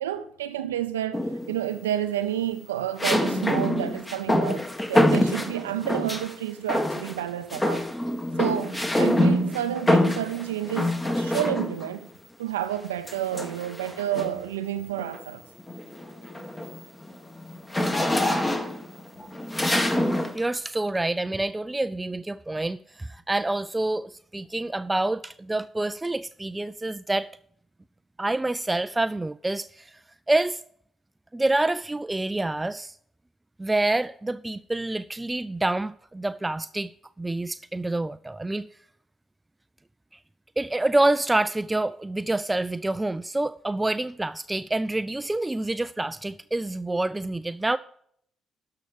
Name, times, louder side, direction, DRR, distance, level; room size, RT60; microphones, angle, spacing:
voice 1, 0.0-7.9 8.4-12.1 12.4-15.4, right 12 dB, 85° right, 0.5 m, -30 dB
sound 1, 1.1-1.7 3.0-6.3 6.7-7.2 7.5-11.9 13.1-14.5 15.0-15.2 15.6-20.4, left 1 dB, 20° left, 1.5 m, -25 dB
voice 2, 20.3-27.3 28.2-29.9 30.3-30.6 31.3-33.0 33.6-36.9 37.2-38.7 40.6-47.8, right 2 dB, 15° right, 0.3 m, -27 dB
12.0 x 5.8 x 4.9 m
hypercardioid pair, 45°, 0 cm